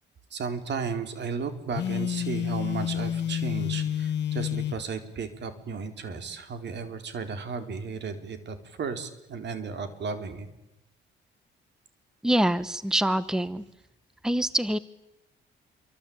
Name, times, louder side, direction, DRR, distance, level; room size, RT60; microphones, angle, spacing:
voice 1, 0.3-10.5, right 5 dB, 60° right, 8 dB, 4.2 m, -34 dB
Telephone, 1.7-4.8, left 10 dB, 60° left, 1.0 m, -29 dB
voice 2, 12.2-13.6 14.2-14.8, right 1 dB, 5° right, 15 dB, 1.1 m, -25 dB
27.5 x 24.5 x 8.8 m, 0.91 s
cardioid pair, 90°, 20 cm